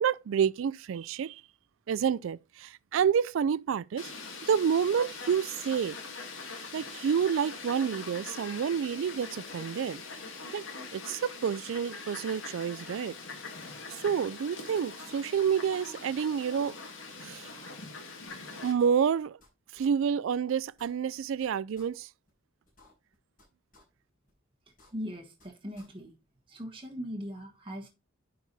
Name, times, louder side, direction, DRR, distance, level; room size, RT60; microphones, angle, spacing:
voice 1, 0.0-1.4 1.9-4.1 4.5-6.0 6.7-10.0 10.5-10.6 10.9-13.2 14.0-16.8 17.2-17.6 18.6-19.4 19.7-22.1, right 7 dB, 70° right, 0.3 m, -29 dB
Fowl, 4.0-18.7, left 4 dB, 70° left, 2.2 m, -43 dB
sound 1, 18.8-19.5 19.8-19.9 20.3-20.4 20.7-21.5 21.8-21.9 22.3-22.4 22.7-23.5 23.7-23.8 24.3-24.4 24.7-25.5 25.8-25.9, left 2 dB, 40° left, 4.8 m, -60 dB
voice 2, 24.9-26.1 26.5-27.9, equal, 25° right, 1.4 m, -39 dB
9.7 x 4.7 x 4.1 m
head